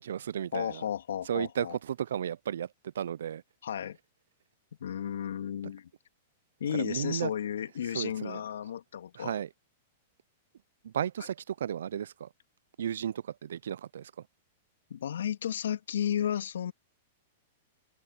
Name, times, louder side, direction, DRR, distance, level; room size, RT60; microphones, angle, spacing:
voice 1, 0.0-0.8 1.3-2.7 3.0-3.4 6.7-7.3 7.9-8.4 9.2-9.5 10.8-12.3 12.8-14.1, right 9 dB, 75° right, 0.4 m, -34 dB
voice 2, 0.5-1.8 3.6-4.0 4.8-5.9 6.6-9.4 14.9-16.7, left 9 dB, 80° left, 2.7 m, -33 dB
open air
hypercardioid pair, 120°, 0 cm